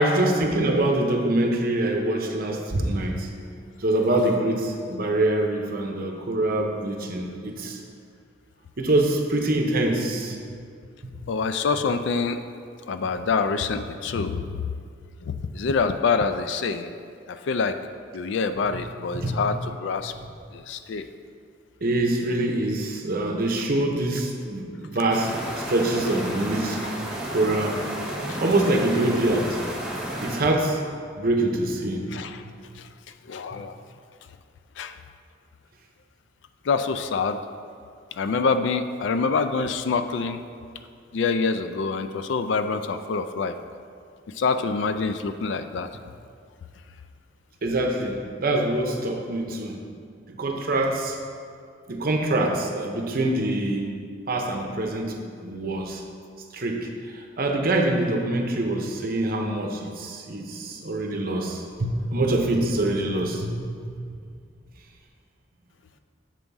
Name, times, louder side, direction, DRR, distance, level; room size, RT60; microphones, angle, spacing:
voice 1, 0.0-3.3 3.8-7.8 8.8-10.4 11.0-11.1 19.1-19.4 21.8-26.9 27.3-27.8 28.4-29.6 30.2-30.8 31.2-32.0 47.6-49.8 50.3-51.2 51.9-53.9 54.3-56.0 56.5-64.0, right 1 dB, 50° right, 2 dB, 0.7 m, -25 dB
voice 2, 11.3-12.4 12.9-14.5 15.2-16.9 17.3-17.8 18.1-20.1 20.5-21.1 28.3-28.4 32.1-32.4 32.8-32.9 33.3-33.7 34.8-35.0 36.6-37.4 38.1-40.5 41.1-43.5 44.3-45.9, left 4 dB, 65° left, 10 dB, 0.3 m, -26 dB
sound 1, 25.1-30.4, right 1 dB, 5° right, 1.0 m, -32 dB
7.5 x 3.5 x 5.4 m, 2.3 s
head